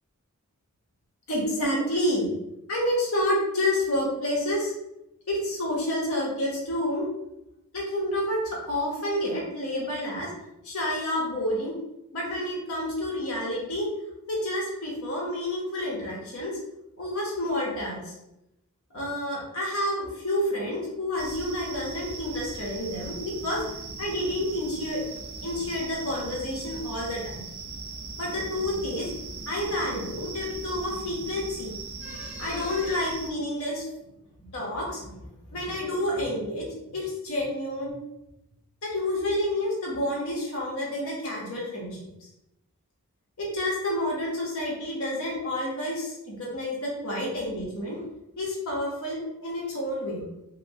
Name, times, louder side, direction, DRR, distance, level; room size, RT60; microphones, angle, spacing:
voice 1, 1.3-2.3 2.7-4.7 5.3-7.0 7.7-10.3 10.6-11.7 12.1-13.8 14.3-16.5 17.0-18.2 18.9-23.6 24.0-25.0 25.4-27.4 28.2-29.1 29.5-31.7 32.0-33.9 34.5-35.2 35.5-37.9 38.8-42.0 43.4-48.0 48.4-50.2, left 1 dB, 70° left, -4 dB, 1.0 m, -29 dB
sound 1, 21.2-33.3, right 4 dB, 65° right, 0.6 m, -39 dB
3.0 x 3.0 x 2.8 m, 0.89 s
head